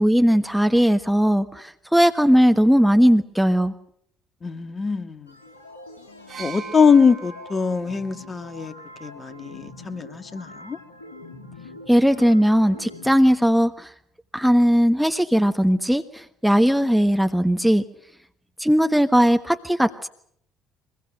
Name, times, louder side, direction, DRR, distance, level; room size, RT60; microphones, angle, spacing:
voice 1, 0.0-1.6 1.9-3.7 11.9-13.9 14.3-16.0 16.4-17.8 18.6-20.1, equal, ahead, 1.4 m, -18 dB
voice 2, 4.4-5.3 6.4-8.7 9.0-10.8, left 5 dB, 30° left, 1.8 m, -22 dB
sound 1, 5.3-13.1, left 2 dB, 80° left, 2.2 m, -44 dB
sound 2, 6.3-10.1 11.1-11.3, right 6 dB, 40° right, 6.1 m, -42 dB
23.5 x 21.5 x 7.8 m
figure-of-eight pair, 50°, 0 cm